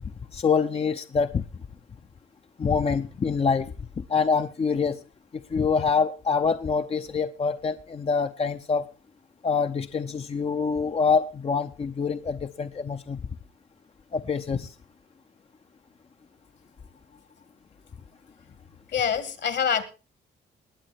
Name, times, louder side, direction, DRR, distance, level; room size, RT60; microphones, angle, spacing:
voice 1, 0.3-1.4 2.6-3.7 4.0-5.0 5.5-8.9 9.4-13.2 14.1-14.7, left 5 dB, 30° left, 8 dB, 0.6 m, -25 dB
voice 2, 18.9-19.8, left 7 dB, 60° left, 12 dB, 2.2 m, -25 dB
20.5 x 7.8 x 4.5 m, 0.32 s
cardioid pair, 90°, 20 cm